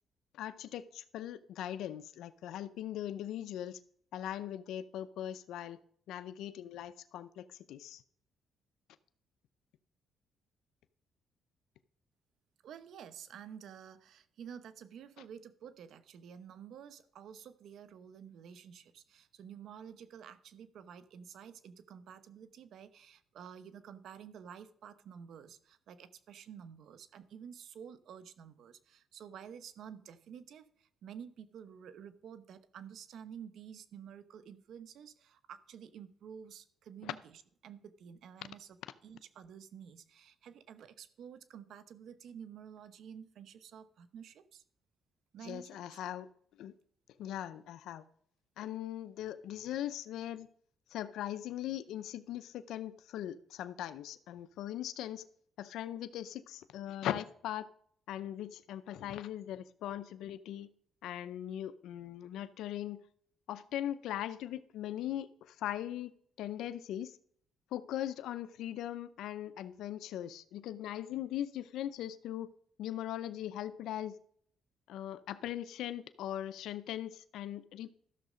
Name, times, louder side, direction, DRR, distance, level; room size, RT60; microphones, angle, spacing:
voice 1, 0.3-3.8 4.1-5.8 6.1-8.0 37.0-37.1 45.4-46.3 46.6-46.7 47.2-48.0 48.6-50.5 50.9-55.2 55.6-57.7 58.1-60.7 61.0-63.0 63.5-66.1 66.4-67.2 67.7-72.5 72.8-74.1 74.9-77.9, left 12 dB, 85° left, 0.5 m, -40 dB
voice 2, 12.6-44.6 45.3-46.0, right 8 dB, 70° right, 0.9 m, -51 dB
13.5 x 6.5 x 5.0 m
cardioid pair, 90°, 0 cm